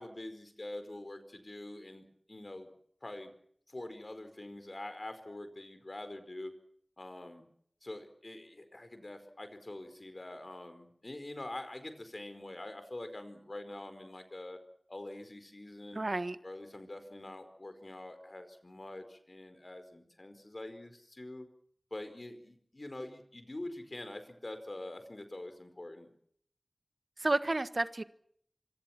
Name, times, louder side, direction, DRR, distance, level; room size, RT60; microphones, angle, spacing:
voice 1, 0.0-2.7 3.0-3.3 3.7-6.5 7.0-7.4 7.8-14.6 14.9-16.0 16.4-21.5 21.9-26.1, left 1 dB, 55° left, 9 dB, 4.7 m, -45 dB
voice 2, 15.9-16.4 27.2-28.0, right 2 dB, 70° right, 12 dB, 1.4 m, -31 dB
26.0 x 26.0 x 5.9 m, 0.65 s
wide cardioid pair, 50°, 0 cm